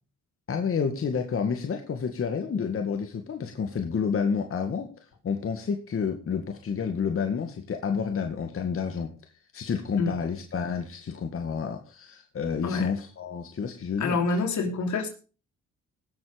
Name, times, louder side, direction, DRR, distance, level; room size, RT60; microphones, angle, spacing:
voice 1, 0.5-4.9 5.2-9.1 9.5-14.2, left 6 dB, 45° left, 4 dB, 1.9 m, -29 dB
voice 2, 14.0-15.1, left 3 dB, 70° left, 5 dB, 3.3 m, -27 dB
18.5 x 7.5 x 5.2 m, 0.36 s
cardioid pair, 90°, 30 cm